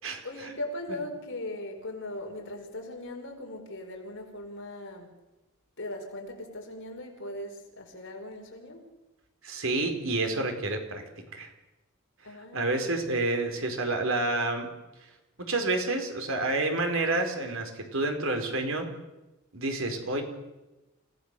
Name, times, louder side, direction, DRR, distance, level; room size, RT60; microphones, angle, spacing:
voice 1, 0.2-5.1 5.8-8.9 12.2-13.0, left 1 dB, 60° left, 3 dB, 5.0 m, -39 dB
voice 2, 9.4-11.0 11.3-11.5 12.5-14.7 15.4-18.9 19.5-20.2, right 2 dB, 65° right, 5 dB, 4.3 m, -29 dB
29.0 x 18.0 x 6.8 m, 1.0 s
head